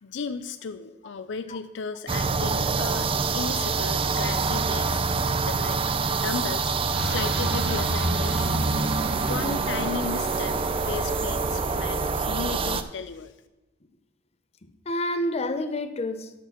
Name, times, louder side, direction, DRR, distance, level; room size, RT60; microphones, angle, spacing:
voice 1, 0.0-5.8 6.1-8.6 9.3-13.3, left 5 dB, 70° left, 0.5 m, -35 dB
sound 1, 2.1-12.8, right 4 dB, 30° right, 0.5 m, -26 dB
sound 2, 6.9-12.2, right 1 dB, 80° right, 1.5 m, -33 dB
voice 2, 14.6-16.3, left 1 dB, 35° left, 0.7 m, -29 dB
12.0 x 5.0 x 5.8 m
head